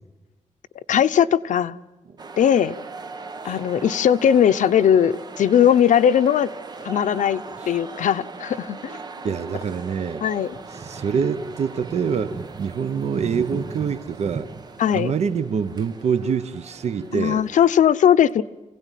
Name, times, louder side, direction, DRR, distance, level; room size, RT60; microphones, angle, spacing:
voice 1, 0.9-1.8 2.4-2.8 3.4-6.5 6.8-9.0 9.2-9.3 10.2-10.6 14.8-15.1 17.1-18.4, left 9 dB, 85° left, 0.7 m, -19 dB
sound 1, 2.2-17.7, right 4 dB, 35° right, 1.1 m, -38 dB
voice 2, 9.2-10.2 10.8-14.5 14.9-17.4, right 6 dB, 60° right, 0.9 m, -25 dB
27.0 x 17.0 x 9.2 m
wide cardioid pair, 165°, 13 cm